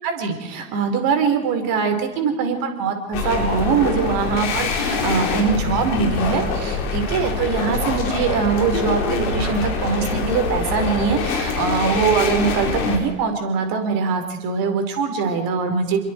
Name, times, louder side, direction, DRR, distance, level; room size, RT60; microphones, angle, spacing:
voice 1, 0.0-16.0, right 5 dB, 55° right, 6 dB, 4.6 m, -22 dB
sound 1, 3.1-13.0, left 4 dB, 60° left, 4.8 m, -24 dB
28.0 x 22.5 x 4.7 m, 1.1 s
figure-of-eight pair, 70°, 41 cm